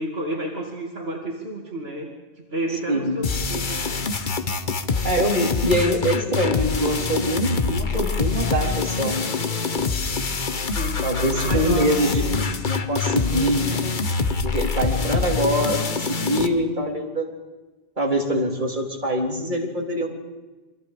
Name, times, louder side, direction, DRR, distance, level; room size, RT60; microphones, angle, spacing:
voice 1, 0.0-2.1 2.4-4.0 10.7-12.6 13.7-13.9, right 1 dB, 75° right, 0 dB, 2.7 m, -31 dB
voice 2, 2.9-3.2 5.0-9.3 11.0-12.2 12.7-13.7 14.4-17.3 18.0-20.1, equal, 50° right, 0 dB, 3.8 m, -24 dB
sound 1, 3.2-16.5, left 4 dB, 50° left, 1.3 m, -25 dB
29.0 x 24.0 x 5.1 m, 1.2 s
omnidirectional pair, 1.1 m